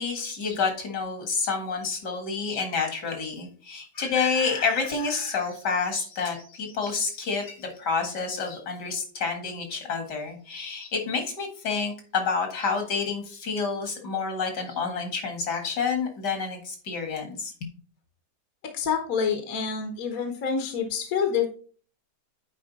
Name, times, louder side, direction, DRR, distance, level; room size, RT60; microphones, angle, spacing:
voice 1, 0.0-17.5, left 5 dB, 75° left, 4 dB, 2.3 m, -29 dB
voice 2, 18.7-21.5, left 6 dB, 60° left, 5 dB, 1.4 m, -27 dB
8.8 x 4.9 x 4.0 m, 0.42 s
omnidirectional pair, 1.8 m